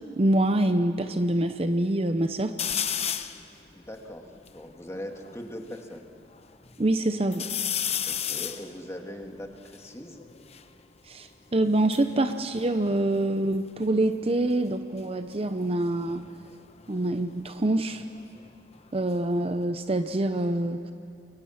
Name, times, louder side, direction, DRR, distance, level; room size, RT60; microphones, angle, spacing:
voice 1, 0.2-2.5 6.8-7.5 11.1-16.2 16.9-18.0 18.9-20.9, right 1 dB, 35° right, 9 dB, 0.8 m, -25 dB
sound 1, 2.6-3.4 4.0-4.1 4.3-5.8 6.3-6.9 7.3-10.7 11.6-13.5 13.8-14.3 15.9-18.5 18.8-19.6, left 9 dB, 40° left, 0.9 m, -34 dB
voice 2, 3.7-4.3 4.5-6.1 8.0-10.2, equal, 15° left, 3 dB, 2.0 m, -40 dB
28.5 x 23.0 x 5.8 m, 2.7 s
head